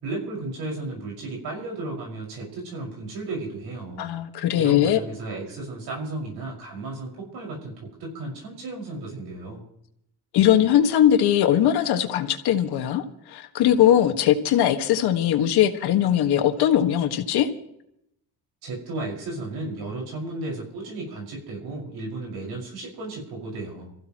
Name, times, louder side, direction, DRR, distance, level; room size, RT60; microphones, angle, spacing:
voice 1, 0.0-4.1 4.6-9.6 18.6-23.9, right 2 dB, 80° right, -2 dB, 5.8 m, -34 dB
voice 2, 4.0-5.0 10.3-17.5, left 10 dB, 85° left, 6 dB, 1.8 m, -20 dB
27.0 x 15.0 x 3.1 m, 0.77 s
cardioid pair, 135°, 38 cm